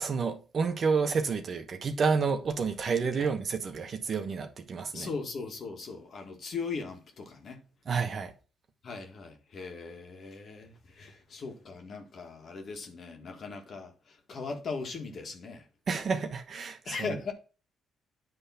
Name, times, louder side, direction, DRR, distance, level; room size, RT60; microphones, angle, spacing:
voice 1, 0.0-5.1 7.9-8.3 15.9-17.1, right 5 dB, 50° right, 1.2 m, -30 dB
voice 2, 4.9-7.6 8.8-15.7 16.9-17.3, left 4 dB, 55° left, 1.8 m, -39 dB
9.6 x 3.5 x 5.7 m
cardioid pair, 90°, 0 cm